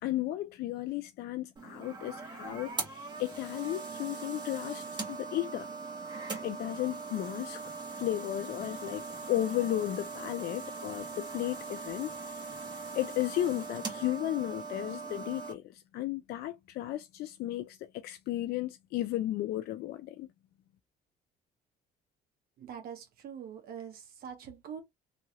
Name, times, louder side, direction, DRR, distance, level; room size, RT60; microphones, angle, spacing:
voice 1, 0.0-5.7 6.4-7.6 8.0-12.5 12.9-20.3, left 14 dB, 70° left, 0.4 m, -34 dB
sound 1, 1.6-15.5, right 4 dB, 25° right, 1.2 m, -41 dB
voice 2, 22.6-24.8, right 8 dB, 65° right, 1.1 m, -44 dB
3.0 x 2.7 x 2.5 m
cardioid pair, 110°, 17 cm